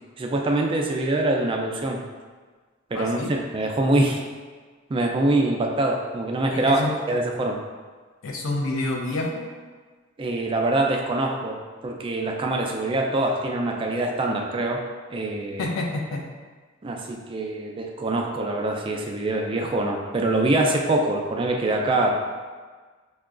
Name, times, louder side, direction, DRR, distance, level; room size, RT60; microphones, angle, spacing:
voice 1, 0.2-2.0 2.9-4.2 4.9-6.8 7.1-7.6 10.2-14.8 15.1-15.8 16.8-22.1, right 2 dB, 25° right, 1 dB, 0.3 m, -24 dB
voice 2, 2.9-3.3 6.5-6.9 8.2-9.5 15.6-16.2, left 2 dB, 80° left, 0 dB, 0.6 m, -28 dB
5.5 x 2.2 x 2.4 m, 1.4 s
head